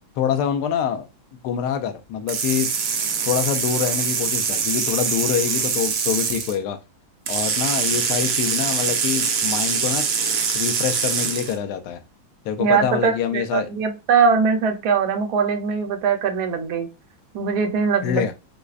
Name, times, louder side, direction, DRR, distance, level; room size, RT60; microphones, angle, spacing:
voice 1, 0.2-1.1 1.4-2.7 3.2-6.8 7.3-10.0 10.5-12.0 12.4-13.7 18.0-18.3, left 8 dB, 75° left, 0.9 m, -25 dB
sound 1, 2.3-6.5 7.3-11.6, right 6 dB, 85° right, 0.7 m, -23 dB
voice 2, 12.6-16.9 17.3-18.3, right 5 dB, 65° right, 1.1 m, -21 dB
4.8 x 2.1 x 2.4 m
omnidirectional pair, 2.2 m